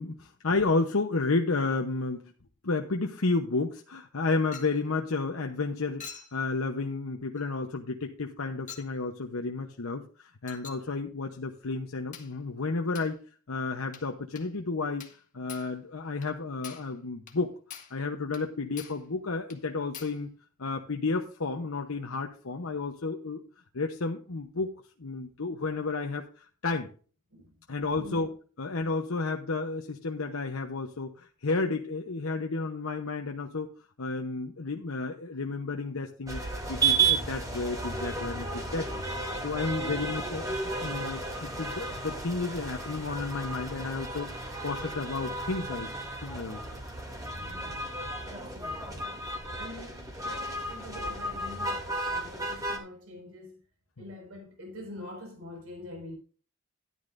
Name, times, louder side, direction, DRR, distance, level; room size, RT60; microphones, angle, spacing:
voice 1, 0.0-2.3 2.6-13.2 13.5-15.1 15.3-17.5 17.9-20.3 20.6-23.4 23.7-24.7 25.0-26.9 27.7-28.3 28.6-33.7 34.0-36.4 36.7-39.0 39.4-45.9 46.2-46.6 54.0-54.1, left 3 dB, 70° left, 1.0 m, -32 dB
Chink clink, 4.5-4.8 6.0-6.4 7.4-7.5 8.7-8.9 10.5-10.9 12.1-12.4 12.9-13.1 13.9-14.1 14.4-14.5 15.0-15.2 15.5-15.7 16.2-16.3 16.6-16.9 17.3-17.4 17.7-18.0 18.3-18.5 18.8-19.0 19.5-19.6 19.9-20.2, left 7 dB, 40° left, 1.7 m, -45 dB
voice 2, 28.0-28.3 39.9-40.0 48.2-49.2 49.5-53.6 54.0-56.1, left 1 dB, 75° right, 5.4 m, -45 dB
sound 1, 36.3-52.8, right 4 dB, 15° right, 2.7 m, -33 dB
13.5 x 11.0 x 2.6 m
head